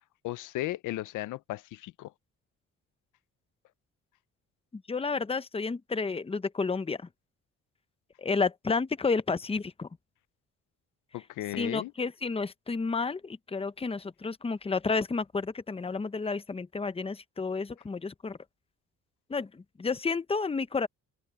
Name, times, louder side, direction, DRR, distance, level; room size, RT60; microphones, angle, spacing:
voice 1, 0.2-2.1 11.1-11.9, left 16 dB, 85° left, 0.7 m, -35 dB
voice 2, 4.7-7.1 8.2-9.9 11.6-18.4 19.3-20.9, left 4 dB, 20° left, 0.9 m, -31 dB
cardioid pair, 90°, 30 cm